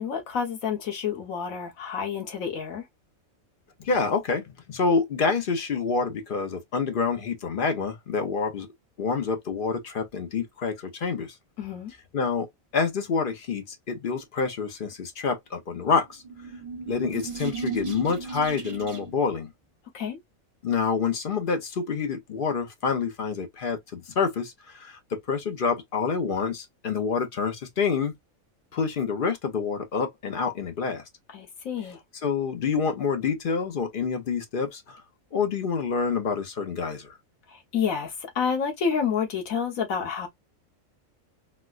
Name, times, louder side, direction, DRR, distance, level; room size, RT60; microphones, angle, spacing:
voice 1, 0.0-2.8 11.6-11.9 19.9-20.2 31.3-32.0 37.5-40.3, left 6 dB, 75° left, 1.4 m, -29 dB
voice 2, 3.8-8.7 9.0-11.3 12.1-12.5 12.7-16.2 16.9-19.5 20.6-28.1 28.7-31.0 32.2-35.0 35.3-37.2, left 5 dB, 50° left, 0.7 m, -27 dB
sound 1, 16.1-19.3, right 5 dB, 35° right, 1.3 m, -35 dB
4.0 x 2.2 x 2.3 m
omnidirectional pair, 1.4 m